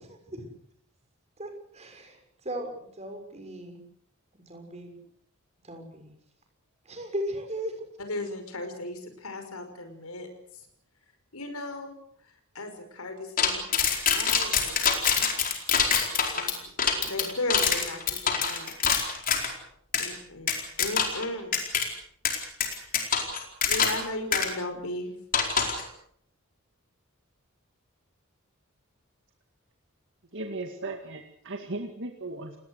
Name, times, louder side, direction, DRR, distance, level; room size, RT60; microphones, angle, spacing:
voice 1, 1.7-2.2 2.4-3.8 4.5-4.9 5.7-6.1 6.9-7.7 17.2-17.4, right 1 dB, 30° right, 5 dB, 6.3 m, -36 dB
voice 2, 8.0-10.3 11.3-11.9 12.5-13.6 14.1-15.1 16.3-16.5 16.9-18.7 20.0-21.6 23.7-25.1, left 1 dB, 90° left, 7 dB, 5.7 m, -36 dB
sound 1, 13.4-19.5 19.9-20.1 20.5-21.3 21.5-21.9 22.3-24.1 24.3-24.5 25.3-25.8, left 6 dB, 40° left, 4.6 m, -25 dB
voice 3, 30.3-32.5, right 2 dB, 60° right, 4 dB, 2.2 m, -36 dB
29.5 x 19.0 x 6.6 m, 0.65 s
head